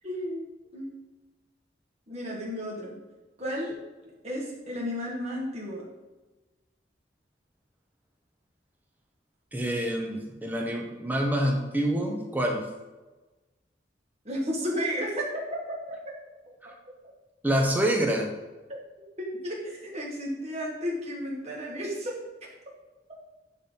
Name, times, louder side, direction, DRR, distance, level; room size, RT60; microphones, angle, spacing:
voice 1, 0.0-0.9 2.1-3.0 3.4-3.8 4.0-5.9 14.3-16.1 19.2-22.2, equal, 35° right, -3 dB, 2.0 m, -33 dB
voice 2, 9.5-12.6 16.6-16.7 17.4-18.3, right 1 dB, 10° right, 1 dB, 1.0 m, -27 dB
11.0 x 4.1 x 3.9 m, 1.2 s
head